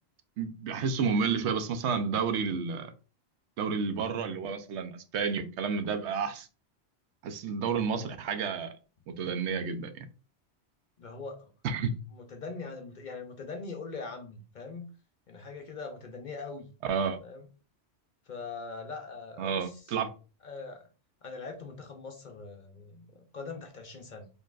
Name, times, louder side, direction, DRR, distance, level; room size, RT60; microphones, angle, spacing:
voice 1, 0.4-2.9 3.6-6.5 7.2-8.7 9.1-10.1 11.6-12.0 16.9-17.2 19.4-20.1, right 5 dB, 80° right, 0.9 m, -30 dB
voice 2, 11.0-11.5 12.1-14.9 15.3-16.7 17.2-17.5 18.3-19.9 20.4-20.9 21.2-24.3, left 4 dB, 50° left, 0.6 m, -42 dB
4.3 x 3.2 x 2.4 m
omnidirectional pair, 1.2 m